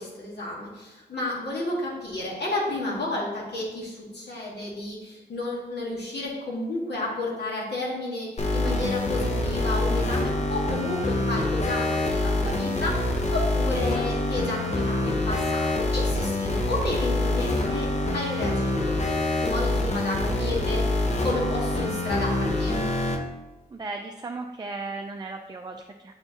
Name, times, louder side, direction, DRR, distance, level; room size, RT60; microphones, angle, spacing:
voice 1, 0.0-19.0 19.4-22.8, left 2 dB, 70° left, -5 dB, 1.7 m, -31 dB
sound 1, 8.4-23.2, left 2 dB, 40° left, 0.7 m, -26 dB
voice 2, 23.7-26.2, right 3 dB, 25° right, 3 dB, 0.4 m, -36 dB
7.7 x 4.6 x 2.9 m, 1.1 s
wide cardioid pair, 150°, 18 cm